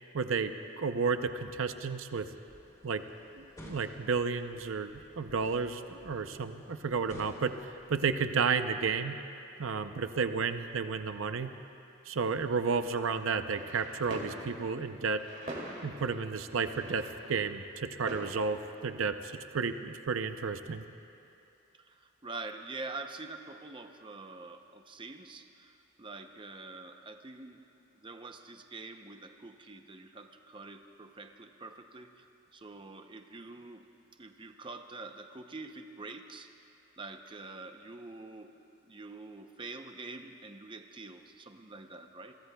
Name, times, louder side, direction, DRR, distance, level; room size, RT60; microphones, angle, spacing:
voice 1, 0.1-2.3 2.8-3.0 3.3-9.2 9.6-11.5 12.1-15.2 15.8-20.8, right 5 dB, 70° right, 9 dB, 0.6 m, -32 dB
sound 1, 2.5-8.2, equal, 15° left, 3.0 m, -54 dB
sound 2, 12.6-19.1, right 1 dB, 40° right, 2.6 m, -46 dB
voice 2, 21.8-27.6 27.9-33.8 34.2-36.5 37.0-38.5 38.8-42.3, right 3 dB, 25° right, 6 dB, 0.6 m, -46 dB
28.0 x 22.0 x 2.3 m, 2.7 s
head